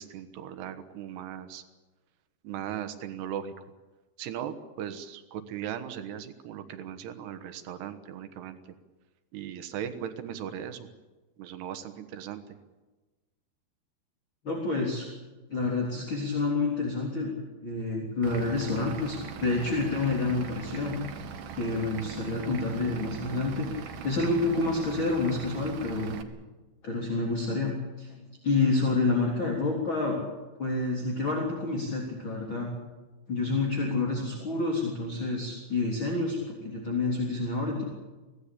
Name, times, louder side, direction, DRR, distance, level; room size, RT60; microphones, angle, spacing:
voice 1, 0.0-1.6 2.4-3.5 4.2-8.6 9.3-10.9 11.4-12.6, right 9 dB, 85° right, 9 dB, 3.4 m, -38 dB
voice 2, 14.4-15.1 15.5-20.9 21.6-26.2 26.8-27.7 28.0-30.2 30.6-32.7 33.3-37.8, left 3 dB, 30° left, -1 dB, 4.0 m, -28 dB
Vehicle / Engine, 18.2-26.2, right 7 dB, 60° right, 2.6 m, -41 dB
23.5 x 17.5 x 8.6 m, 1.2 s
omnidirectional pair, 4.6 m